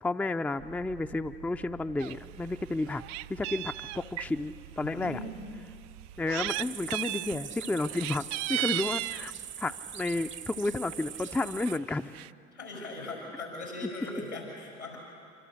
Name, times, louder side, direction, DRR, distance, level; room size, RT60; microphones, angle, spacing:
voice 1, 0.0-3.0 3.3-5.2 6.2-9.3 9.6-12.2 13.8-14.1, left 2 dB, 5° left, 9 dB, 0.5 m, -32 dB
sound 1, 0.6-6.5, right 11 dB, 70° right, 1.4 m, -50 dB
Meow, 2.0-2.1 2.5-4.3 5.0-5.1 6.0-6.6 6.9-7.4 7.8-9.3 10.3-10.5 10.9-11.0 11.2-11.3 11.6-12.3, right 17 dB, 50° right, 0.5 m, -35 dB
voice 2, 4.8-5.4 12.5-15.0, left 2 dB, 90° left, -1 dB, 6.3 m, -39 dB
sound 2, 6.5-11.8, right 9 dB, 35° right, 0.8 m, -42 dB
26.0 x 24.5 x 6.5 m, 2.3 s
figure-of-eight pair, 60°, 35 cm